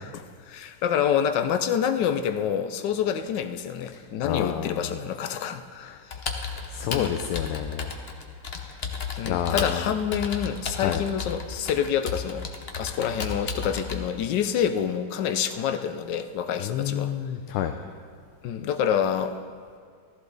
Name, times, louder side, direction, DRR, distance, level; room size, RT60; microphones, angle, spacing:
voice 1, 0.5-6.0 6.9-7.1 9.2-12.5 12.8-17.1 18.4-19.4, left 8 dB, 70° left, 9 dB, 1.1 m, -27 dB
voice 2, 3.9-4.9 5.8-6.0 6.6-7.9 8.5-8.8 9.2-9.9 10.8-11.0 16.6-17.8, left 10 dB, 90° left, 6 dB, 1.5 m, -30 dB
Computer keyboard, 6.1-14.0, left 5 dB, 50° left, 0.7 m, -33 dB
14.5 x 14.0 x 4.0 m, 2.1 s
omnidirectional pair, 2.3 m